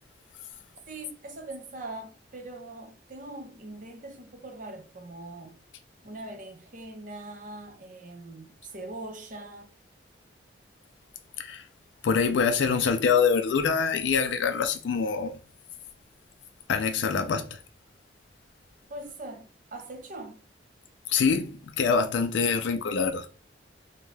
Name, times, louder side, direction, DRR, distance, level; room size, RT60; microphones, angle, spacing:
voice 1, 0.9-5.6 6.0-9.7 18.9-20.4, right 2 dB, 50° right, 0.7 m, -42 dB
voice 2, 12.0-15.4 16.7-17.6 21.1-23.3, left 5 dB, 85° left, 0.4 m, -25 dB
2.7 x 2.2 x 3.1 m
head